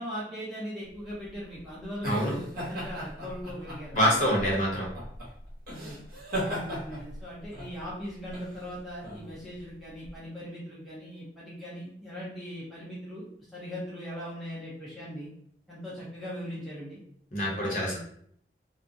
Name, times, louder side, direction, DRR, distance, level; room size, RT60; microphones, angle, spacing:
voice 1, 0.0-4.2 5.8-6.0 6.4-15.3 15.7-17.0 17.5-18.0, equal, ahead, -8 dB, 0.5 m, -40 dB
sound 1, 1.0-10.2, equal, 55° right, 0.8 m, -38 dB
voice 2, 2.0-2.4 3.9-4.9 17.3-18.0, equal, 45° left, -5 dB, 0.7 m, -26 dB
2.3 x 2.1 x 2.6 m, 0.65 s
head